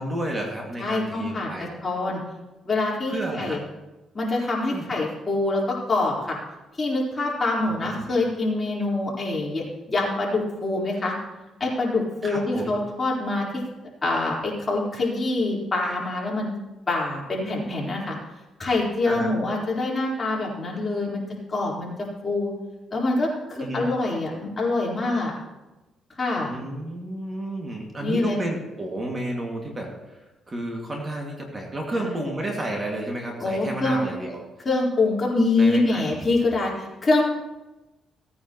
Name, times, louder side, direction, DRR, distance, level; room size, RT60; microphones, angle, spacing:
voice 1, 0.0-1.7 3.1-3.6 4.7-4.9 7.6-8.2 12.2-12.7 19.1-19.3 23.6-23.9 26.4-34.4 35.6-36.1, right 1 dB, 25° right, 0 dB, 2.3 m, -31 dB
voice 2, 0.8-1.5 1.8-2.2 2.7-3.6 4.1-6.4 6.8-11.1 11.6-13.5 14.0-16.5 16.9-18.1 18.6-21.2 21.5-21.9 22.2-22.5 22.9-25.3 26.2-26.5 28.0-28.4 31.9-32.1 33.4-34.0 34.6-37.2, left 2 dB, 30° left, -4 dB, 4.2 m, -25 dB
17.5 x 9.3 x 3.1 m, 1.1 s
cardioid pair, 90°, 0 cm